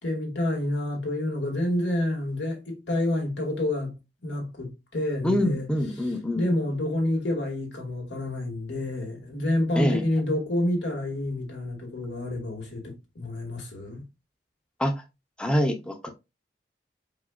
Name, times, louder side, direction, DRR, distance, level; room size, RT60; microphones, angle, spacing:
voice 1, 0.0-4.0 4.2-5.7 6.0-14.1, left 1 dB, 90° left, 2.0 m, -28 dB
voice 2, 5.2-6.5 9.8-10.0 14.8-14.9 15.4-16.1, equal, 5° left, 0.6 m, -25 dB
4.9 x 4.3 x 2.4 m
head